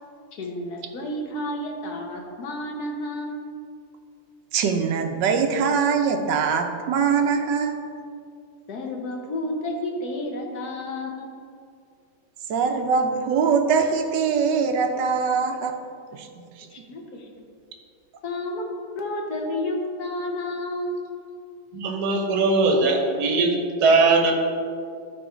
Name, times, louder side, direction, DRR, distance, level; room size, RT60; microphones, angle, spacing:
voice 1, 0.4-3.5 8.7-11.3 16.7-17.3 18.2-18.6 18.9-21.2, left 1 dB, 65° left, 2 dB, 1.6 m, -31 dB
voice 2, 4.5-7.8 12.5-15.8 16.1-16.9, right 5 dB, 85° right, 6 dB, 1.4 m, -23 dB
voice 3, 21.7-23.5 23.8-24.3, right 3 dB, 65° right, 2 dB, 1.6 m, -20 dB
12.5 x 4.4 x 5.0 m, 2.3 s
omnidirectional pair, 1.9 m